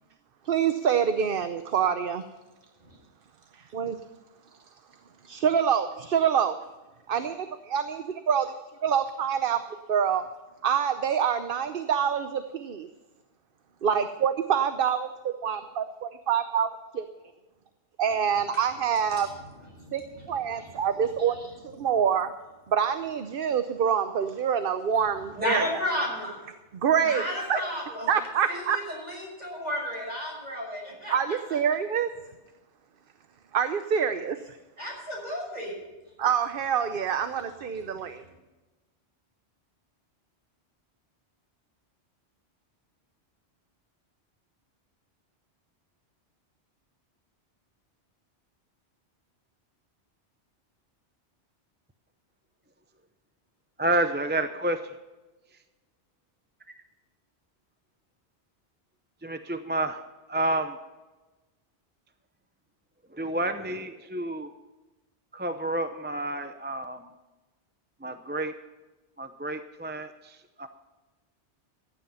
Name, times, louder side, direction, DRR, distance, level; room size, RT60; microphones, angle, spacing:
voice 1, 0.4-2.2 3.5-4.0 5.2-6.5 7.1-8.5 8.8-9.6 9.9-10.2 10.6-12.9 13.8-17.0 18.0-19.3 19.9-20.0 20.3-21.3 21.6-22.3 22.7-25.6 26.8-27.2 27.5-27.6 28.1-28.8 31.1-32.1 33.5-34.6 36.2-38.2, right 8 dB, 55° right, 9 dB, 0.9 m, -26 dB
voice 2, 19.7-20.3 20.6-20.7 21.3-21.5 25.3-26.4 27.0-28.1 28.5-31.6 34.8-35.7, left 1 dB, 40° right, -2 dB, 6.3 m, -33 dB
voice 3, 53.8-55.0 59.2-60.0 60.3-60.8 63.1-64.5 65.3-67.1 68.0-68.5 69.2-70.7, right 1 dB, 10° right, 8 dB, 0.6 m, -30 dB
15.0 x 10.5 x 5.6 m, 1.1 s
omnidirectional pair, 1.1 m